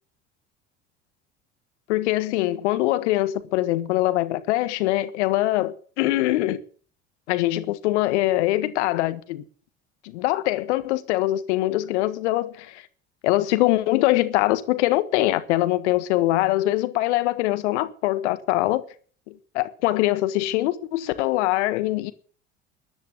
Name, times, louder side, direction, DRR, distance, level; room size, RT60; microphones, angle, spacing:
voice 1, 1.9-6.6 7.3-9.4 10.0-12.8 13.2-18.8 19.3-22.1, left 16 dB, 70° left, 1.5 m, -23 dB
14.0 x 10.5 x 9.2 m
figure-of-eight pair, 60°, 36 cm